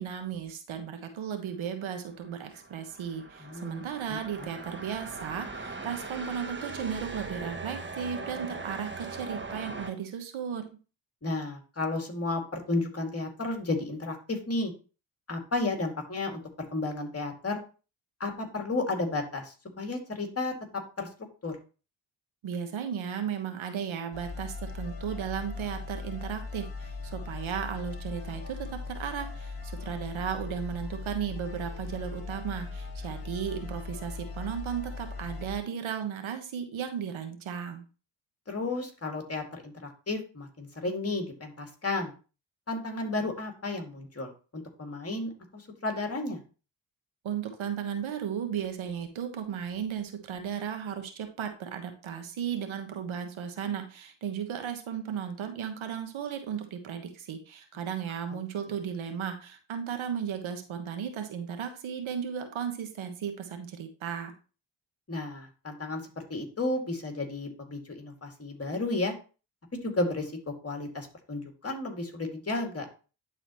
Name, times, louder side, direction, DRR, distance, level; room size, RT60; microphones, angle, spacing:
voice 1, 0.0-10.6 22.4-37.8 47.2-64.3, right 8 dB, 75° right, 6 dB, 1.3 m, -35 dB
sound 1, 2.1-9.9, right 3 dB, 25° right, 1.2 m, -40 dB
voice 2, 3.4-4.5 11.2-14.7 15.3-16.4 16.7-17.6 18.2-20.5 21.0-21.1 21.4-21.6 38.5-42.1 42.7-46.4 58.3-58.4 65.1-69.1 69.8-72.9, left 2 dB, 30° left, 3 dB, 2.3 m, -33 dB
sound 2, 24.1-35.6, left 3 dB, 50° left, 1.8 m, -39 dB
11.0 x 4.1 x 3.0 m, 0.34 s
cardioid pair, 60°, 48 cm